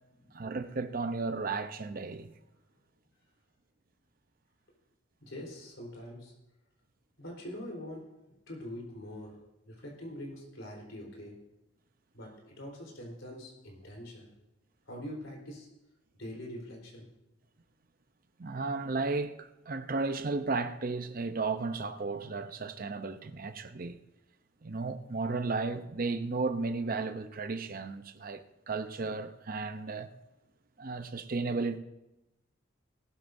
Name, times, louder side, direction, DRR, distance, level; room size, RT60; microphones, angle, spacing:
voice 1, 0.3-2.3 18.4-24.0 24.6-30.1 30.8-31.8, right 3 dB, 45° right, 0.6 m, -34 dB
voice 2, 5.2-6.3 7.2-8.1 8.5-11.4 12.1-14.3 14.9-15.7 16.2-17.1, left 1 dB, 70° left, 3.8 m, -44 dB
18.5 x 13.0 x 2.6 m
head